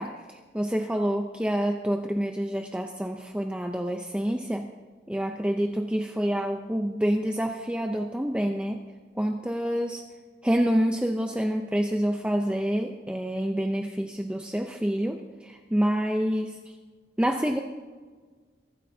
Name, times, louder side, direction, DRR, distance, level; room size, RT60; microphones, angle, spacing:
voice 1, 0.0-4.7 5.1-8.8 9.2-10.0 10.4-16.6 17.2-17.6, equal, 5° right, 3 dB, 0.6 m, -27 dB
23.0 x 13.0 x 2.8 m, 1.5 s
head